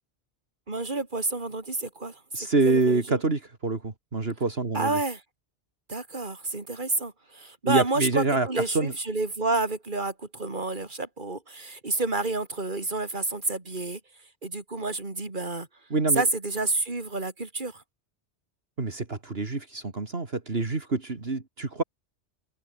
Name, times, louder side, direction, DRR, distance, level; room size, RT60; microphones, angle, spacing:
voice 1, 0.7-3.2 4.7-5.2 5.9-14.0 14.4-15.7 16.1-17.8, right 3 dB, 45° right, 3.4 m, -30 dB
voice 2, 2.3-5.0 7.6-8.9 15.9-16.2 18.8-21.8, right 3 dB, 65° right, 2.8 m, -26 dB
omnidirectional pair, 1.1 m